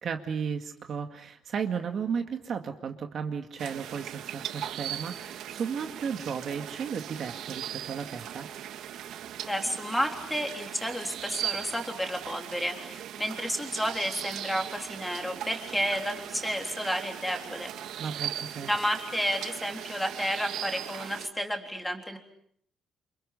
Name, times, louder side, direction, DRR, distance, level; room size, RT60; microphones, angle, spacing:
voice 1, 0.0-8.5 18.0-18.7, right 6 dB, 45° right, 6 dB, 2.1 m, -34 dB
sound 1, 3.6-21.3, right 10 dB, 80° right, 1.6 m, -39 dB
voice 2, 9.4-17.7 18.7-22.2, equal, 5° left, 3 dB, 3.6 m, -31 dB
29.0 x 28.5 x 6.7 m, 0.67 s
cardioid pair, 160°, 0 cm